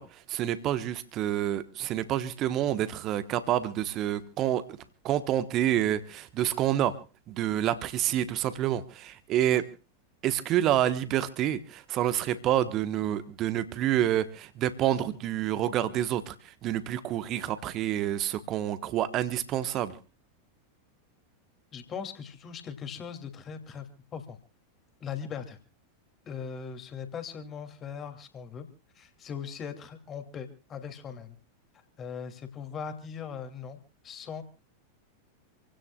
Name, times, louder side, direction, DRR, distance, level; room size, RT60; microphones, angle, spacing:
voice 1, 0.0-4.8 5.0-6.9 7.3-9.7 10.2-20.0, right 12 dB, 35° right, 12 dB, 1.3 m, -28 dB
voice 2, 21.7-24.4 25.0-25.6 26.2-28.7 28.9-31.4 32.0-33.8 34.0-34.4, left 7 dB, 25° left, 7 dB, 2.8 m, -39 dB
28.0 x 17.0 x 2.4 m, 0.32 s
figure-of-eight pair, 90°, 0 cm